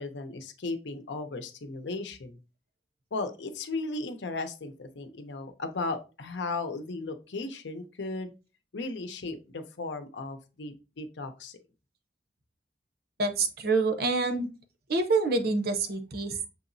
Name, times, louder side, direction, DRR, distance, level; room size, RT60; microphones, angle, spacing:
voice 1, 0.0-2.4 3.1-8.3 8.7-11.6, left 3 dB, 90° left, 8 dB, 0.7 m, -36 dB
voice 2, 13.2-14.5 14.9-16.5, right 3 dB, 60° right, 7 dB, 0.7 m, -27 dB
6.2 x 2.9 x 2.6 m, 0.31 s
head